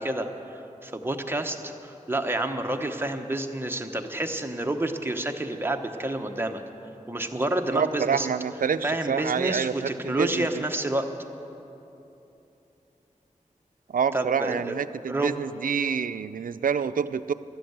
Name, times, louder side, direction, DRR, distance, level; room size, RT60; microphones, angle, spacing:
voice 1, 0.0-6.6 7.1-8.3 8.8-11.1 14.1-14.7 15.1-15.3, right 1 dB, 15° right, 4 dB, 1.0 m, -29 dB
voice 2, 7.7-10.6 13.9-17.3, right 7 dB, 85° right, 13 dB, 0.4 m, -27 dB
13.5 x 11.5 x 8.0 m, 3.0 s
wide cardioid pair, 75°, 14 cm